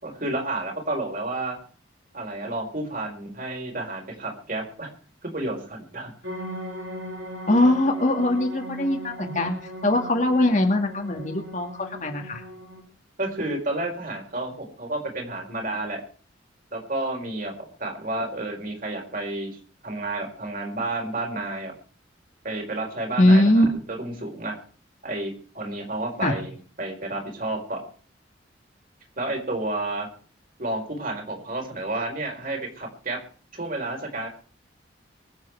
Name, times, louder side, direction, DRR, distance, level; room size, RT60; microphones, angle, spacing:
voice 1, 0.0-1.6 2.1-4.9 5.2-6.1 13.2-16.0 16.7-21.7 22.4-23.4 23.9-24.6 25.0-27.8 29.2-30.1 30.6-33.2 33.5-34.3, right 2 dB, 45° right, 1 dB, 4.6 m, -31 dB
sound 1, 6.2-12.8, equal, 80° right, 4.1 m, -38 dB
voice 2, 7.5-9.6 9.8-12.4 23.2-23.7 26.2-26.4, left 1 dB, 40° left, 4 dB, 2.1 m, -21 dB
23.5 x 8.1 x 4.7 m, 0.42 s
head